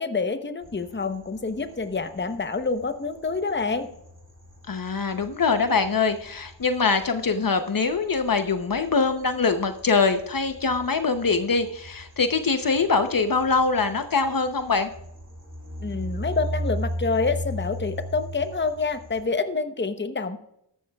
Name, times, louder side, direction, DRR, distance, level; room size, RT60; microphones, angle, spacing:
voice 1, 0.0-3.9 15.8-20.4, left 4 dB, 25° left, 9 dB, 0.9 m, -27 dB
sound 1, 0.6-19.2, equal, 45° right, 4.2 m, -38 dB
voice 2, 4.7-14.9, left 4 dB, 50° left, 8 dB, 0.9 m, -23 dB
14.0 x 12.0 x 2.4 m, 0.76 s
wide cardioid pair, 75°, 43 cm